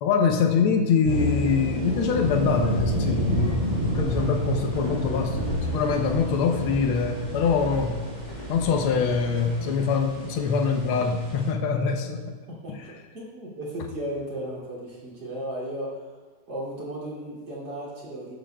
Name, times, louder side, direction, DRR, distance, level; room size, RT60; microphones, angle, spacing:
voice 1, 0.0-8.0 8.5-12.2 12.7-12.8, left 5 dB, 85° left, 4 dB, 1.7 m, -24 dB
sound 1, 1.0-11.5, equal, 20° right, 3.8 m, -30 dB
sound 2, 2.9-9.9, right 2 dB, 20° left, 2.9 m, -39 dB
voice 2, 12.5-16.1 16.5-18.4, right 1 dB, 60° right, -7 dB, 3.5 m, -35 dB
14.0 x 11.0 x 2.3 m, 1.4 s
omnidirectional pair, 2.3 m